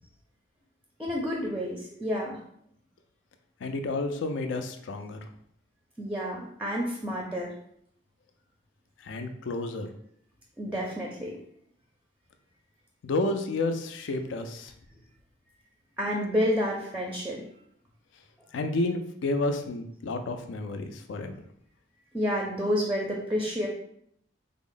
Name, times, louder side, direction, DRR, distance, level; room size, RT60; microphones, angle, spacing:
voice 1, 1.0-2.4 6.0-7.5 10.6-11.3 16.0-17.4 22.1-23.7, equal, 5° right, -2 dB, 0.5 m, -29 dB
voice 2, 3.6-5.2 9.0-9.9 13.0-14.7 18.5-21.3, left 2 dB, 80° left, 7 dB, 0.4 m, -30 dB
3.5 x 2.0 x 3.7 m, 0.69 s
head